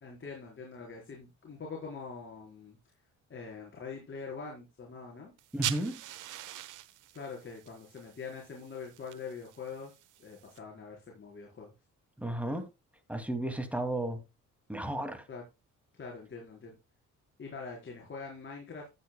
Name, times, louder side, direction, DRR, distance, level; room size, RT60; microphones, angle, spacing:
voice 1, 0.0-2.8 3.3-5.3 7.1-11.7 15.3-15.4 16.0-16.7 17.4-18.9, left 5 dB, 40° left, 4.5 m, -44 dB
sound 1, 5.4-10.6, right 14 dB, 85° right, 1.1 m, -43 dB
voice 2, 5.5-6.0 12.2-12.7 13.1-14.2 14.7-15.2, right 1 dB, 5° right, 2.4 m, -33 dB
14.0 x 8.5 x 2.2 m
cardioid pair, 90°, 30 cm